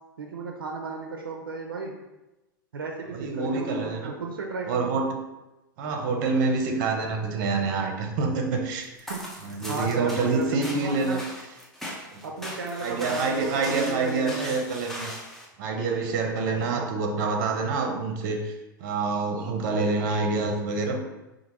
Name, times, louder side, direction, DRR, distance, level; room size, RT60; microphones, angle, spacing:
voice 1, 0.2-1.9 2.7-5.0 9.1-9.2 9.7-11.2 12.2-14.6 16.7-16.9, right 4 dB, 90° right, 1 dB, 0.5 m, -34 dB
voice 2, 3.1-4.1 4.7-5.1 5.8-9.1 9.4-11.2 12.1-12.2 12.8-15.1 15.6-18.5 18.8-21.0, right 4 dB, 55° right, 4 dB, 0.8 m, -27 dB
sound 1, 8.8-15.5, equal, 5° left, 0.9 m, -39 dB
4.9 x 2.5 x 3.0 m, 1.0 s
hypercardioid pair, 105°, 11 cm